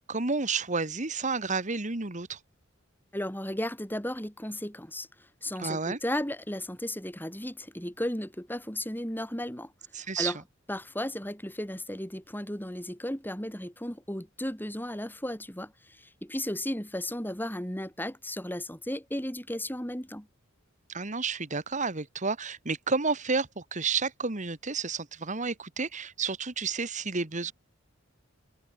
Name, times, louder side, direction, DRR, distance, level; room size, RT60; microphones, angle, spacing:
voice 1, 0.1-2.4 5.6-6.0 9.9-10.3 20.9-27.5, right 4 dB, 40° right, 1.9 m, -31 dB
voice 2, 3.1-5.1 5.4-9.7 10.0-10.4 10.7-20.3, left 1 dB, 10° left, 5.4 m, -35 dB
head